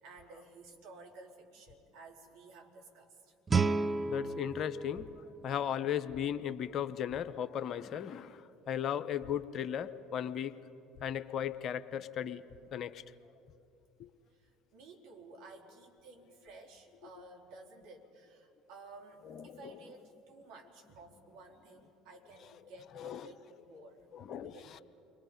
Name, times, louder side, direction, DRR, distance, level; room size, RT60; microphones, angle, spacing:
voice 1, 0.0-3.3 3.8-4.2 14.3-24.1 24.3-24.8, right 3 dB, 65° right, 0 dB, 3.4 m, -54 dB
Guitar, 3.5-6.2, right 4 dB, 25° right, 0.7 m, -33 dB
voice 2, 4.1-10.5 11.0-12.4 12.7-13.0 19.3-19.7 23.0-23.2 24.1-24.6, left 9 dB, 50° left, 12 dB, 0.8 m, -36 dB
29.5 x 23.0 x 5.3 m, 2.7 s
hypercardioid pair, 65°, 0 cm